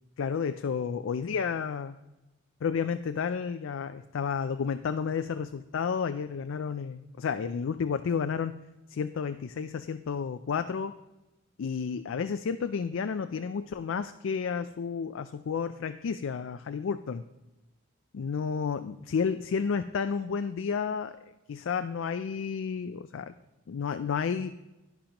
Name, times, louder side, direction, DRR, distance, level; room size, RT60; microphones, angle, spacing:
voice 1, 0.2-2.0 2.6-8.6 8.9-11.0 11.6-17.2 18.1-23.3 23.7-24.5, left 6 dB, 80° left, 9 dB, 0.4 m, -31 dB
10.5 x 10.0 x 2.9 m, 0.98 s
head